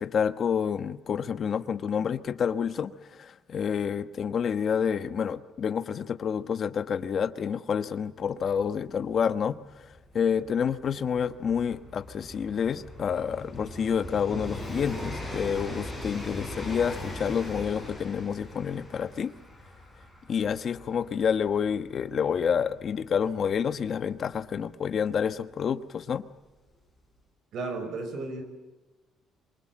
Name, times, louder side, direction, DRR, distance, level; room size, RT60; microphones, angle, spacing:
voice 1, 0.0-9.6 9.8-19.3 20.3-26.2, left 7 dB, 35° left, 11 dB, 1.1 m, -28 dB
Train, 8.2-8.3 8.5-25.1 26.1-26.2, left 1 dB, 10° right, 7.7 m, -41 dB
voice 2, 27.5-28.4, right 3 dB, 50° right, 8 dB, 5.4 m, -33 dB
26.5 x 23.5 x 7.5 m, 1.1 s
cardioid pair, 175°, 0 cm